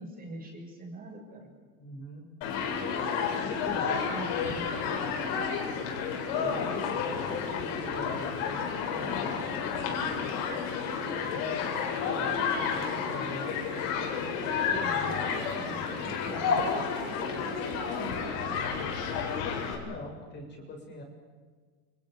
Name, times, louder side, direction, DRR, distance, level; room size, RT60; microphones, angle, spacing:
voice 1, 0.0-1.5 3.7-5.1 14.7-18.6, right 2 dB, 20° right, 0 dB, 7.0 m, -42 dB
voice 2, 1.8-2.3 3.3-4.0 6.4-10.7 11.1-13.5 19.8-21.0, left 3 dB, 25° left, 1 dB, 6.7 m, -42 dB
Human group actions, 2.4-19.7, left 6 dB, 60° left, 7.7 m, -31 dB
30.0 x 29.5 x 5.3 m, 1.5 s
supercardioid pair, 150°, 41 cm